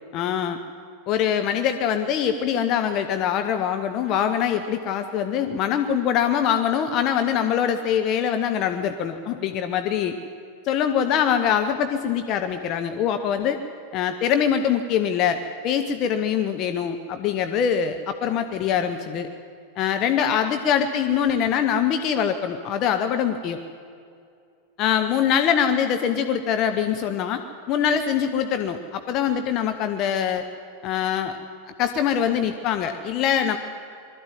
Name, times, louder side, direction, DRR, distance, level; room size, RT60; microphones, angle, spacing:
voice 1, 0.1-0.6 1.1-10.2 10.6-13.6 13.9-19.3 19.8-23.6 24.8-27.4 27.7-30.4 30.8-31.4 31.7-33.6, left 8 dB, 35° left, 7 dB, 0.9 m, -23 dB
20.5 x 13.5 x 9.5 m, 2.4 s
figure-of-eight pair, 90°, 0 cm